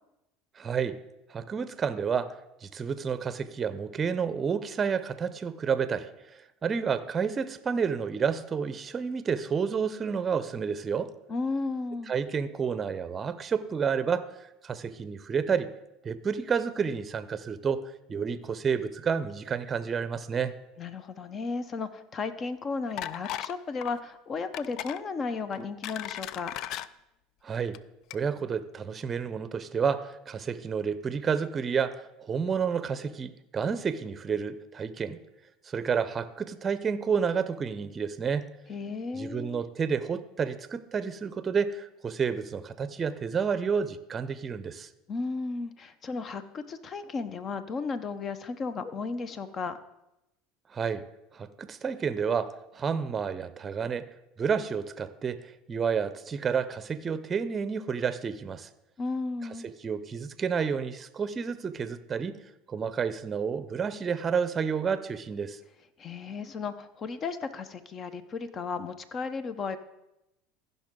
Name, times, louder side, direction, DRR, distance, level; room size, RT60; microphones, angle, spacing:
voice 1, 0.6-1.0 1.3-2.3 2.6-11.1 12.1-15.7 16.0-17.8 18.1-20.5 27.4-27.8 28.1-35.2 35.7-38.5 39.2-44.9 50.7-51.0 51.3-54.1 54.4-58.7 59.6-62.4 62.7-65.6, right 6 dB, 30° right, 14 dB, 0.6 m, -30 dB
voice 2, 11.3-12.1 20.8-26.5 38.7-39.6 45.1-49.8 59.0-59.7 66.0-69.8, left 4 dB, 40° left, 12 dB, 0.8 m, -34 dB
sound 1, 23.0-23.5 23.8-24.0 24.5-25.0 25.5-26.9 27.6-27.8 28.1-28.2, left 12 dB, 60° left, 0.3 m, -36 dB
15.0 x 5.5 x 3.8 m, 0.88 s
hypercardioid pair, 90°, 0 cm